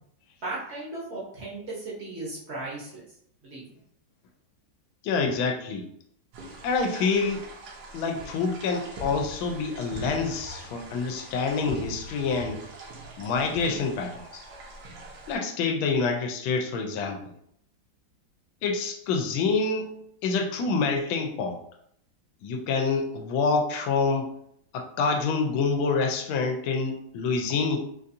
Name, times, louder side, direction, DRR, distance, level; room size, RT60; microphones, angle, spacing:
voice 1, 0.4-3.0 3.4-3.6, right 2 dB, 45° right, -6 dB, 0.9 m, -36 dB
voice 2, 5.0-5.9 6.6-7.5 7.9-12.6 13.2-14.4 15.3-17.2 18.6-21.6 22.4-24.3 24.7-27.8, left 4 dB, 85° left, 4 dB, 1.4 m, -27 dB
sound 1, 6.3-15.4, right 1 dB, 70° right, 1.4 m, -42 dB
3.9 x 2.5 x 2.6 m, 0.70 s
omnidirectional pair, 2.2 m